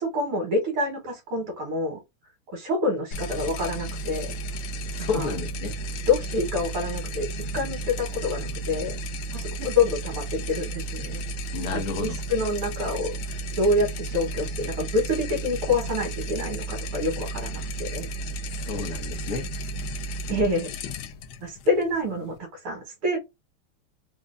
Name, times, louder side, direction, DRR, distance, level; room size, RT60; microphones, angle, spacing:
voice 1, 0.0-2.0 2.5-4.4 5.1-5.3 6.1-7.3 7.5-9.0 9.3-11.2 11.7-13.2 13.6-18.1 20.3-20.7 21.4-23.2, left 2 dB, 90° right, 2.1 m, -27 dB
sound 1, 3.1-22.4, right 1 dB, 80° left, 0.9 m, -33 dB
voice 2, 4.9-5.7 11.5-12.2 18.5-19.5, left 4 dB, 60° left, 1.1 m, -31 dB
4.5 x 2.1 x 2.4 m
omnidirectional pair, 2.3 m